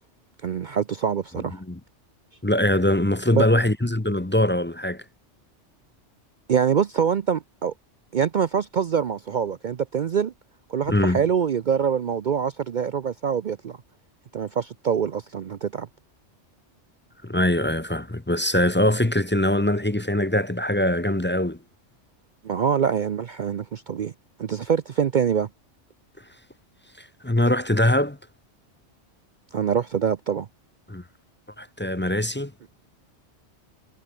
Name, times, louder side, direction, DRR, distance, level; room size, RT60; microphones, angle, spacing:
voice 1, 0.4-1.6 3.3-3.4 6.5-7.7 8.1-10.3 10.7-13.8 14.3-15.9 22.4-24.1 24.4-25.5 29.5-30.5, right 7 dB, 50° right, 0.6 m, -24 dB
voice 2, 2.4-5.0 10.9-11.2 17.2-21.6 27.0-28.2 30.9-31.0 31.6-32.5, left 1 dB, 10° left, 0.7 m, -22 dB
omnidirectional pair, 1.2 m